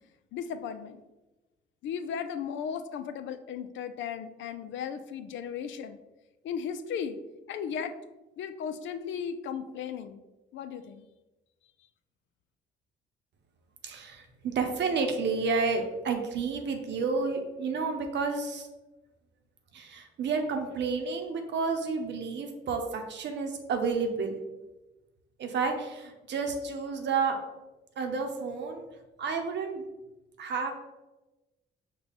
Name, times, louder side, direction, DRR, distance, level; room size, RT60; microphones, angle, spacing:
voice 1, 0.3-1.0 1.8-6.0 6.4-7.2 7.5-8.0 8.4-10.2 10.5-11.0, left 7 dB, 70° left, 10 dB, 0.4 m, -36 dB
voice 2, 13.8-18.7 19.7-24.4 25.4-27.4 28.0-28.9 29.2-29.8 30.4-30.7, right 4 dB, 65° right, 5 dB, 0.8 m, -30 dB
5.5 x 2.3 x 4.0 m, 1.1 s
cardioid pair, 90°, 20 cm